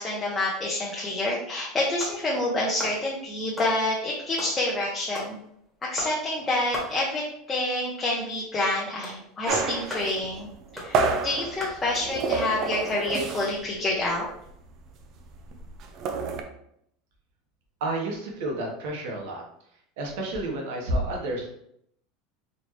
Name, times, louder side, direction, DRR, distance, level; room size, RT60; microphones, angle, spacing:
voice 1, 0.0-5.4 5.9-14.3, left 2 dB, 15° left, -4 dB, 0.7 m, -28 dB
sound 1, 1.6-12.2, left 1 dB, ahead, 1.2 m, -41 dB
sound 2, 9.5-13.7 14.0-14.2 14.5-16.4, right 4 dB, 40° right, 0.5 m, -29 dB
voice 2, 17.8-19.4 20.0-21.5, right 1 dB, 70° right, 0 dB, 1.2 m, -30 dB
4.3 x 2.8 x 3.1 m, 0.72 s
supercardioid pair, 150°, 0 cm